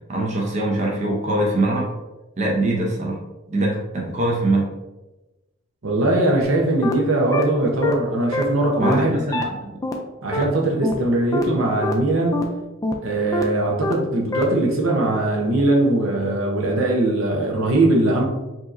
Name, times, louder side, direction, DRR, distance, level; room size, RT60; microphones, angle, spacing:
voice 1, 0.1-1.9 2.4-3.2 3.5-4.7 8.8-9.7, right 1 dB, 35° right, -2 dB, 0.6 m, -22 dB
voice 2, 5.8-9.5 10.2-12.4 13.0-18.2, right 2 dB, 80° right, -1 dB, 0.8 m, -20 dB
sound 1, 6.4-6.5 6.8-6.9 7.3-7.4 7.8-7.9 8.3-8.4 8.8-8.9 9.3-9.4 9.8-9.9 10.3-10.4 10.8-10.9 11.3-11.4 11.8-11.9 12.3-12.4 12.8-12.9 13.3-13.4 13.8-13.9 14.3-14.4, left 1 dB, 15° left, 0.3 m, -24 dB
4.8 x 2.9 x 2.5 m, 1.1 s
head